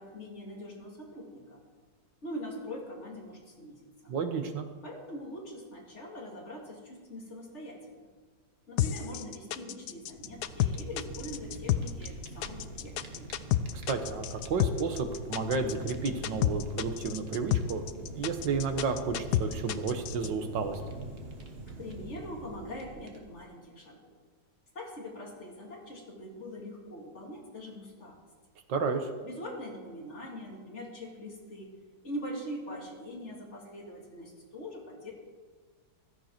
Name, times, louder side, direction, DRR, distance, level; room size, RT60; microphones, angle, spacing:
voice 1, 0.0-1.6 2.2-4.1 4.8-8.1 8.7-13.3 21.7-24.1 24.7-28.2 29.2-31.7 32.0-35.1, equal, 35° left, -1 dB, 2.5 m, -43 dB
voice 2, 4.1-4.7 13.7-20.8 28.7-29.1, right 4 dB, 70° right, 6 dB, 1.9 m, -32 dB
sound 1, 8.8-20.3, left 13 dB, 70° left, 1.0 m, -30 dB
Fire, 10.0-23.5, right 2 dB, 35° right, 1.5 m, -44 dB
15.5 x 13.5 x 4.5 m, 1.5 s
omnidirectional pair, 2.1 m